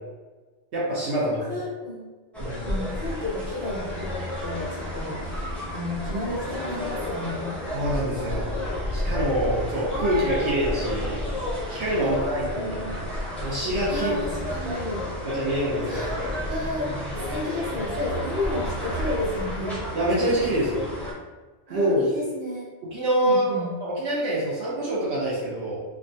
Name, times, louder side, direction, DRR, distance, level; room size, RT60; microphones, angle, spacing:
voice 1, 0.7-1.4 2.4-2.7 7.7-8.5 8.9-11.2 11.7-12.8 13.4-14.1 15.2-16.1 19.9-20.9 21.7-22.0 22.9-25.8, right 1 dB, 65° right, -7 dB, 0.9 m, -25 dB
voice 2, 1.5-2.1 2.7-7.6 11.9-12.9 13.9-15.1 15.9-19.8 21.7-22.7 23.2-23.7, left 1 dB, 35° right, -7 dB, 0.9 m, -32 dB
sound 1, 2.3-21.1, left 1 dB, ahead, 0.4 m, -31 dB
3.4 x 2.1 x 2.6 m, 1.3 s
omnidirectional pair, 1.3 m